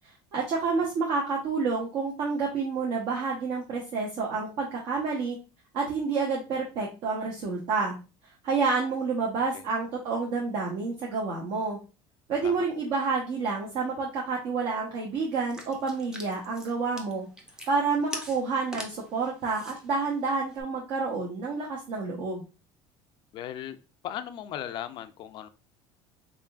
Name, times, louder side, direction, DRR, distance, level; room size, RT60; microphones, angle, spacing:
voice 1, 0.3-5.4 5.7-8.0 8.4-11.8 12.3-17.3 17.7-22.4, right 4 dB, 55° right, -3 dB, 0.9 m, -29 dB
sound 1, 15.5-20.6, equal, 5° right, 0.6 m, -44 dB
voice 2, 23.3-23.8 24.0-25.5, left 11 dB, 45° left, 11 dB, 0.4 m, -37 dB
3.7 x 3.4 x 2.4 m, 0.31 s
cardioid pair, 155°, 11 cm